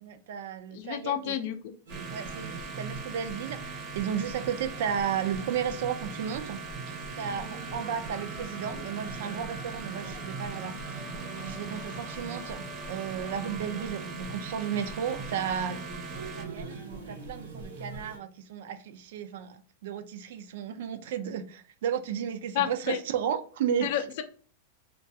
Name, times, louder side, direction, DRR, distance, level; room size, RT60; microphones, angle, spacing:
voice 1, 0.0-1.4 2.1-6.6 6.9-11.0 11.4-15.8 16.2-23.9, right 8 dB, 70° right, 0.3 m, -34 dB
voice 2, 0.7-1.6 22.5-23.0 23.8-24.2, left 11 dB, 60° left, 0.4 m, -30 dB
sound 1, 1.9-16.4, right 4 dB, 35° right, 0.6 m, -41 dB
sound 2, 1.9-18.2, right 3 dB, 85° right, 0.9 m, -42 dB
sound 3, 7.5-13.5, left 2 dB, 15° left, 0.7 m, -50 dB
2.3 x 2.2 x 2.6 m
hypercardioid pair, 120°, 0 cm